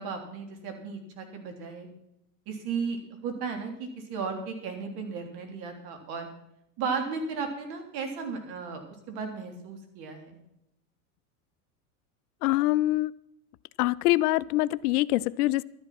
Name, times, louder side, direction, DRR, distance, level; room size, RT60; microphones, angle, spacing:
voice 1, 0.0-1.9 2.5-6.3 6.8-8.8 9.1-10.4, right 5 dB, 50° right, 4 dB, 3.4 m, -35 dB
voice 2, 12.4-13.1 13.8-15.6, left 17 dB, 70° left, 19 dB, 0.6 m, -24 dB
12.5 x 11.0 x 6.0 m, 0.79 s
hypercardioid pair, 115°, 47 cm